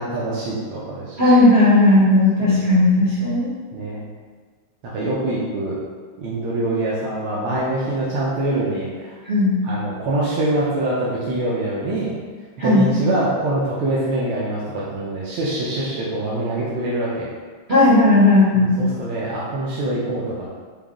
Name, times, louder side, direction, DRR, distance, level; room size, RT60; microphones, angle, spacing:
voice 1, 0.0-1.2 3.7-4.1 4.8-5.8 6.2-9.1 9.6-12.1 12.6-17.3 18.5-20.5, right 1 dB, 85° right, -7 dB, 1.6 m, -24 dB
voice 2, 1.2-3.5 9.2-9.6 12.6-12.9 17.7-18.7, left 2 dB, 45° right, -11 dB, 0.9 m, -15 dB
5.1 x 2.3 x 3.6 m, 1.5 s
omnidirectional pair, 2.3 m